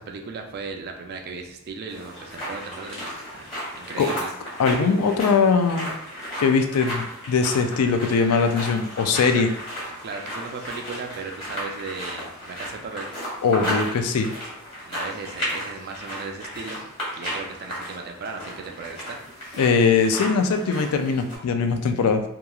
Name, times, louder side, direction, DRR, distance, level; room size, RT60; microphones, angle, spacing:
voice 1, 0.0-4.3 9.2-9.5 10.0-13.1 14.8-16.8 17.1-19.6, right 4 dB, 45° right, 3 dB, 0.4 m, -36 dB
sound 1, 1.9-21.4, equal, 25° left, 1.2 m, -34 dB
voice 2, 4.6-5.9 6.4-9.5 13.4-14.3 19.6-22.2, left 5 dB, 85° left, 6 dB, 0.3 m, -21 dB
2.9 x 2.3 x 2.3 m, 0.75 s
head